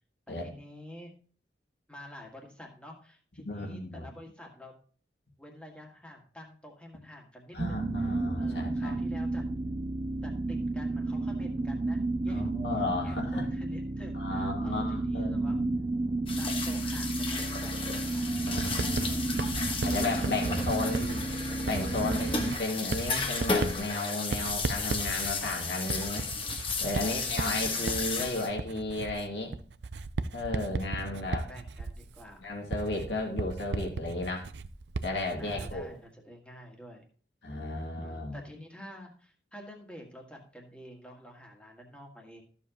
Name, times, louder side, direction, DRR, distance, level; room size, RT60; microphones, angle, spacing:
voice 1, 0.3-1.2 1.9-4.7 5.4-8.1 8.4-9.5 10.2-12.5 13.0-15.6 16.4-18.4 20.4-21.0 22.0-22.4 26.9-28.1 29.3-29.7 30.9-32.5 35.3-37.0 38.0-42.4, equal, 5° left, 0 dB, 1.8 m, -49 dB
voice 2, 3.5-4.1 7.5-8.9 12.3-13.4 14.1-15.8 18.2-19.4 19.8-21.2 21.7-26.3 26.8-29.5 30.3-31.5 32.4-34.5 35.0-35.9 37.4-38.4, left 2 dB, 80° left, 0 dB, 2.5 m, -34 dB
sound 1, 7.6-22.6, right 2 dB, 25° right, 0.3 m, -32 dB
sound 2, 16.3-28.5, left 4 dB, 30° left, 1.3 m, -34 dB
Writing, 18.6-35.9, right 3 dB, 80° right, 0.5 m, -36 dB
14.0 x 7.0 x 3.0 m, 0.43 s
head